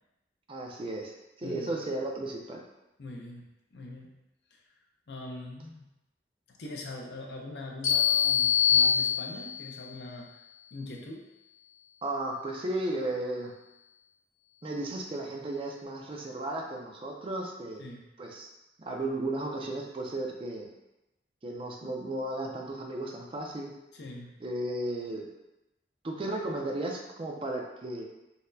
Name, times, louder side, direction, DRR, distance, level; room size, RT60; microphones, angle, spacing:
voice 1, 0.5-1.1 1.4-2.6 12.0-13.5 14.6-17.8 18.2-18.5 18.8-20.7 21.4-23.7 24.4-25.3 26.0-28.0, right 1 dB, 30° right, 1 dB, 0.4 m, -34 dB
voice 2, 1.4-1.7 3.0-4.1 4.5-4.6 5.1-5.9 6.5-10.3 10.7-11.3 17.8-18.1 23.9-24.3, left 2 dB, 70° left, 0 dB, 0.5 m, -42 dB
sound 1, 7.8-9.7, left 8 dB, 40° left, 0.9 m, -24 dB
4.1 x 2.1 x 2.6 m, 0.94 s
head